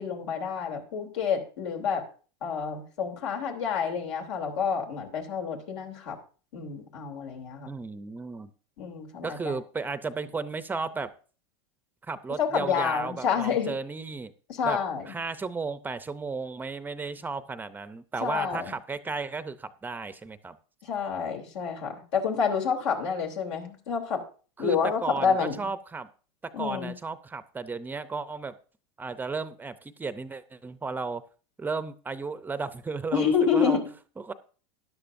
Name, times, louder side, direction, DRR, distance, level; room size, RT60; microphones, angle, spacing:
voice 1, 0.0-2.0 2.4-6.2 6.5-7.7 8.8-9.5 12.4-13.7 14.5-15.0 18.2-18.7 20.8-24.2 24.6-25.6 26.5-26.9 33.1-33.8, left 6 dB, 85° left, 2 dB, 3.0 m, -28 dB
voice 2, 7.7-8.5 9.2-11.1 12.0-14.3 14.6-14.8 15.1-20.6 24.6-26.1 26.6-28.5 29.0-31.2 31.6-33.8 34.2-34.3, right 4 dB, 10° right, 12 dB, 0.5 m, -34 dB
13.5 x 11.0 x 2.6 m, 0.39 s
supercardioid pair, 130°, 15 cm